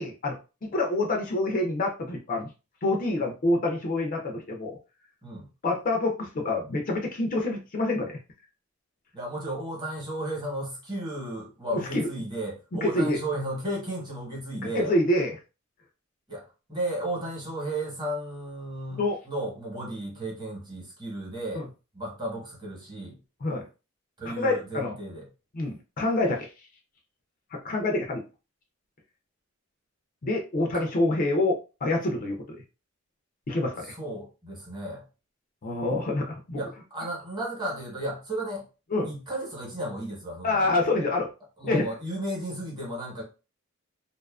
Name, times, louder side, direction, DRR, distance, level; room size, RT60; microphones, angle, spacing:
voice 1, 0.0-2.5 2.8-4.8 5.6-8.2 11.7-12.1 12.7-13.2 14.6-15.4 18.9-19.2 21.5-21.6 23.4-23.7 24.4-25.0 25.5-26.5 27.5-28.2 30.2-32.6 33.5-33.9 35.6-36.6 38.9-39.1 40.4-41.3 41.6-41.9, left 2 dB, 40° left, 0.4 m, -27 dB
voice 2, 9.1-14.9 16.3-16.4 16.7-21.7 21.9-23.2 24.2-25.2 30.6-30.9 33.8-35.0 36.5-38.6 39.0-41.1 41.6-43.2, right 1 dB, 20° right, 1.0 m, -34 dB
2.6 x 2.3 x 2.3 m
head